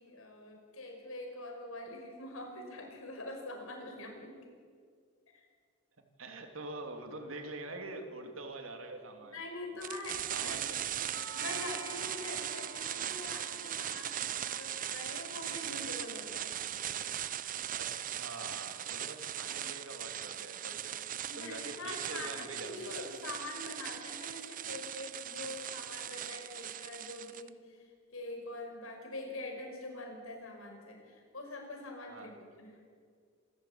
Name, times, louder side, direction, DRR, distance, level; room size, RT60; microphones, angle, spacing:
voice 1, 0.0-4.4 5.3-5.5 9.3-10.6 11.3-16.6 21.3-32.8, left 2 dB, 80° left, 2 dB, 5.6 m, -44 dB
voice 2, 6.2-9.3 10.3-10.8 17.7-21.0 21.4-22.9 32.1-32.3, right 2 dB, 75° right, 5 dB, 2.9 m, -45 dB
sound 1, 9.8-27.5, right 11 dB, 40° right, 0.6 m, -39 dB
Doorbell, 11.1-19.2, right 3 dB, 55° right, 3.2 m, -53 dB
27.0 x 15.0 x 8.7 m, 2.1 s
head